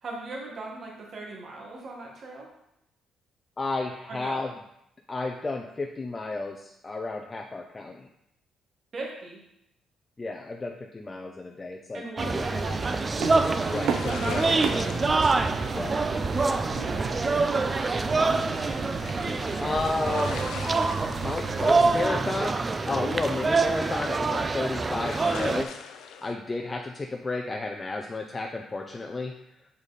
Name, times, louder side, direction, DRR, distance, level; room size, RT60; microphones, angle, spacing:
voice 1, 0.0-2.5 4.1-4.4 8.9-9.4 11.9-13.0 14.2-14.9 16.7-17.7 18.2-18.9, right 2 dB, 50° right, -1 dB, 1.7 m, -39 dB
voice 2, 3.6-4.5 5.1-8.1 10.2-12.8 13.7-15.1 15.7-16.0 19.6-20.4 21.2-22.6 22.9-25.8 26.2-29.3, left 3 dB, 25° left, 2 dB, 0.6 m, -32 dB
sound 1, 12.2-25.6, right 3 dB, 30° right, 0.4 m, -26 dB
sound 2, 13.2-22.0, right 6 dB, 80° right, 0.7 m, -36 dB
sound 3, 13.3-26.3, left 7 dB, 85° left, 0.6 m, -45 dB
7.1 x 4.9 x 4.1 m, 0.81 s
cardioid pair, 90°, 0 cm